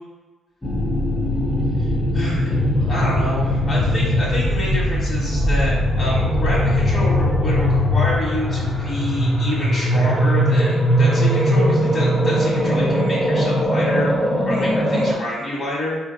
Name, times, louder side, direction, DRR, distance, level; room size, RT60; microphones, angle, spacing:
sound 1, 0.6-15.1, equal, 10° left, 0.5 m, -19 dB
voice 1, 1.8-14.1 14.4-16.0, left 1 dB, 50° left, -7 dB, 1.3 m, -28 dB
4.4 x 2.5 x 2.5 m, 1.2 s
cardioid pair, 90°, 0 cm